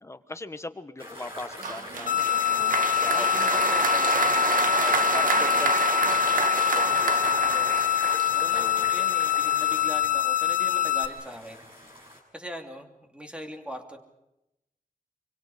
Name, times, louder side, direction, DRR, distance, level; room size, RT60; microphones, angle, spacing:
voice 1, 0.0-2.4 2.9-3.8 4.8-7.3 8.5-8.9, left 2 dB, 20° left, 10 dB, 1.2 m, -40 dB
sound 1, 1.0-12.2, left 1 dB, 40° right, 7.3 m, -41 dB
Applause, 1.6-8.7, right 5 dB, 80° right, 1.6 m, -27 dB
sound 2, 2.1-11.1, left 13 dB, 70° left, 1.7 m, -25 dB
voice 2, 3.0-4.7 7.4-11.6 12.3-14.0, equal, 10° right, 4 dB, 2.8 m, -41 dB
26.5 x 24.0 x 5.0 m, 0.88 s
wide cardioid pair, 125°, 14 cm